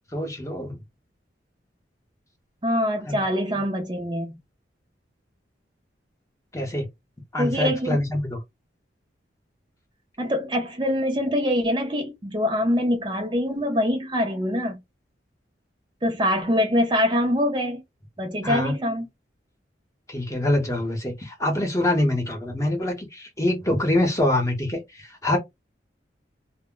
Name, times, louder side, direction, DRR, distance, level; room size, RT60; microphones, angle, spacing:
voice 1, 0.1-0.8 3.1-3.2 3.5-3.6 6.5-6.9 7.3-8.4 18.4-18.7 20.1-25.4, left 1 dB, 15° left, 0.8 m, -25 dB
voice 2, 2.6-4.4 7.4-8.0 10.2-14.8 16.0-17.8 18.2-19.1, equal, 25° right, 0.5 m, -24 dB
2.1 x 2.1 x 3.6 m
head